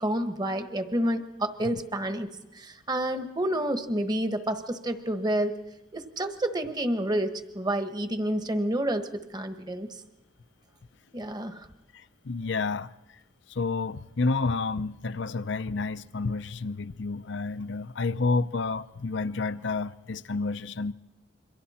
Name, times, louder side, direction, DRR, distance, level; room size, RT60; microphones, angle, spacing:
voice 1, 0.0-5.6 5.9-10.0 11.1-11.7, right 1 dB, 20° right, 1.3 m, -29 dB
voice 2, 11.9-12.9 13.5-20.9, left 3 dB, 65° left, 0.6 m, -30 dB
27.5 x 23.5 x 4.3 m
head